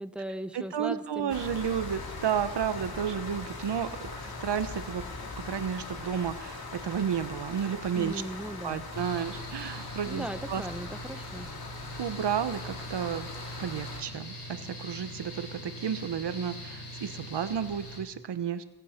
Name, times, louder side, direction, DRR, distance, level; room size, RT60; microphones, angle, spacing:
voice 1, 0.0-1.4 7.9-8.9 10.1-11.5, right 1 dB, 5° right, 9 dB, 1.0 m, -38 dB
voice 2, 0.5-5.0 5.4-8.2 8.6-10.7 12.0-13.3 13.6-18.6, right 8 dB, 85° right, 12 dB, 1.0 m, -32 dB
sound 1, 1.3-14.0, left 3 dB, 60° left, 2.7 m, -41 dB
Mechanical fan, 8.9-18.0, equal, 85° left, 5.5 m, -43 dB
23.5 x 9.8 x 5.8 m, 1.0 s
wide cardioid pair, 90°, 40 cm